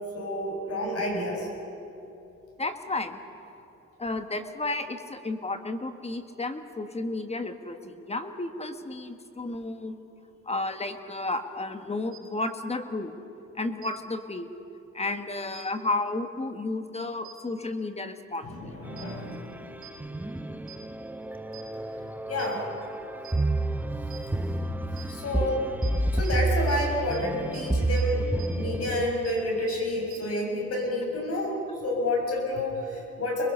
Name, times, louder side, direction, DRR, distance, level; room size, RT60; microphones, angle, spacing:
voice 1, 0.1-1.5 18.4-19.8 22.3-22.7 25.0-25.6 26.1-28.2 28.5-33.5, left 1 dB, 50° left, 0 dB, 6.7 m, -29 dB
voice 2, 2.6-3.2 4.0-10.0 10.4-13.2 13.5-14.5 14.9-18.7, left 2 dB, 20° left, 8 dB, 1.4 m, -32 dB
sound 1, 12.1-12.2 13.8-13.9 15.5-15.6 17.2-17.3 19.0-19.1 19.8-19.9 20.7-20.8 21.5-21.6 22.4-22.5 23.2-23.3 24.1-24.2 25.0-25.1 25.8-25.9 26.2-26.3 26.7-26.8 27.1-27.2 27.5-27.6 28.0-28.1 28.4-28.5 28.8-28.9 29.2-29.3 29.7-29.8 30.1-30.2, right 14 dB, 30° right, 5.5 m, -45 dB
sound 2, 18.8-29.1, right 2 dB, 5° right, 0.8 m, -30 dB
26.0 x 21.5 x 5.6 m, 2.9 s
cardioid pair, 90°, 30 cm